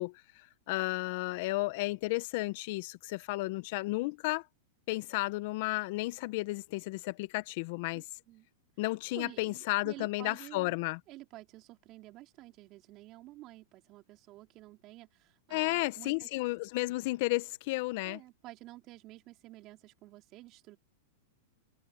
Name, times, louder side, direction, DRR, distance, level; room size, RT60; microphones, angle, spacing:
voice 1, 0.0-4.4 4.9-8.0 8.8-11.0 15.5-18.2, left 22 dB, 55° left, 1.4 m, -33 dB
voice 2, 7.9-8.5 9.1-10.8 11.1-16.3 18.0-20.8, right 17 dB, 40° right, 3.8 m, -51 dB
hypercardioid pair, 115°, 0 cm